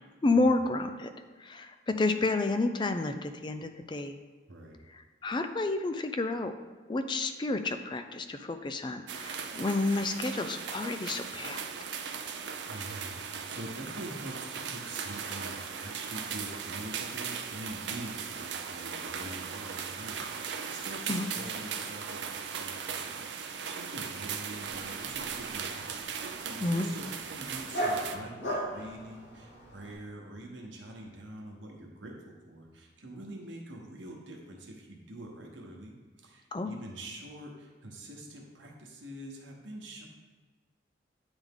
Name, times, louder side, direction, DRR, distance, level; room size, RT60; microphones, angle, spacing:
voice 1, 0.2-1.1 1.4-4.1 5.2-6.5 6.9-11.6 21.1-21.3 26.6-26.9 36.5-36.7, left 2 dB, 25° left, 8 dB, 0.3 m, -30 dB
sound 1, 9.1-28.2, right 6 dB, 75° right, 0.5 m, -38 dB
voice 2, 12.7-40.1, right 1 dB, 90° right, 0 dB, 1.1 m, -45 dB
Dog, 24.6-30.0, right 1 dB, 85° left, 1.9 m, -38 dB
9.0 x 3.5 x 3.6 m, 1.4 s
head